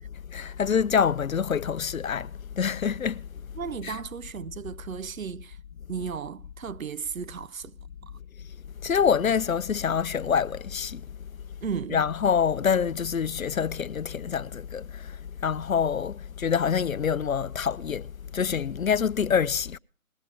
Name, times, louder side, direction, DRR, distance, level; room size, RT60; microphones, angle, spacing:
voice 1, 0.3-3.3 3.8-4.0 8.8-11.0 11.9-19.8, left 7 dB, 70° left, 0.6 m, -26 dB
voice 2, 3.5-5.6 5.9-7.8 11.6-12.1, right 6 dB, 70° right, 0.6 m, -35 dB
19.0 x 9.8 x 4.9 m
figure-of-eight pair, 175°, 42 cm